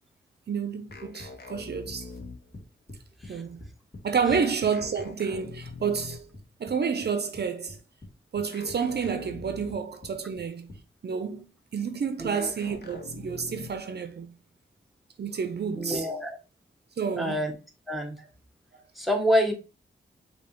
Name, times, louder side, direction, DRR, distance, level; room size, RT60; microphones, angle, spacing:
voice 1, 0.5-2.1 3.3-3.6 4.0-6.3 6.6-7.8 8.3-10.7 11.0-11.5 11.7-14.3 15.2-16.2 17.0-17.4, right 6 dB, 55° right, 0.5 m, -30 dB
sound 1, 0.9-2.7 4.7-6.4 8.5-10.1 12.3-13.9, left 4 dB, 55° left, 0.8 m, -44 dB
sound 2, 0.9-3.3 3.6-5.4 5.7-6.7 7.0-8.1 8.3-8.8 9.0-10.8, left 1 dB, 30° left, 1.7 m, -45 dB
voice 2, 12.2-12.5 15.7-16.4 17.1-17.6 17.9-18.2 18.9-19.5, equal, ahead, 1.1 m, -27 dB
5.4 x 2.8 x 2.9 m
wide cardioid pair, 80°, 20 cm